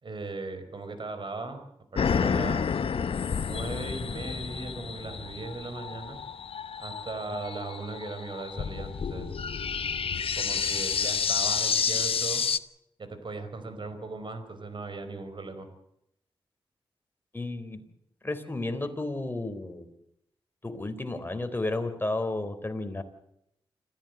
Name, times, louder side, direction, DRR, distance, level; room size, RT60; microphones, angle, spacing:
voice 1, 0.0-1.6 1.9-2.7 3.4-6.2 6.8-9.3 10.4-12.4 13.0-15.7, right 3 dB, 55° right, 9 dB, 5.0 m, -38 dB
sound 1, 2.0-12.6, left 6 dB, 70° left, 1.0 m, -30 dB
voice 2, 17.3-17.9 18.2-19.9 20.6-23.0, left 2 dB, 20° left, 7 dB, 3.9 m, -32 dB
26.5 x 15.0 x 7.9 m, 0.78 s
cardioid pair, 65°, 10 cm